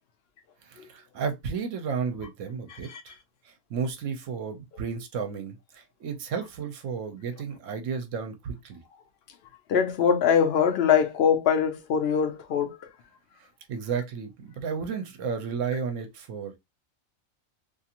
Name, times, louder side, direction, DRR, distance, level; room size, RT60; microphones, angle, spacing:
voice 1, 0.6-3.2 3.4-8.8 13.4-16.6, right 6 dB, 75° right, 1.0 m, -33 dB
voice 2, 9.7-12.8, left 7 dB, 60° left, 0.7 m, -22 dB
2.6 x 2.4 x 2.8 m
omnidirectional pair, 1.4 m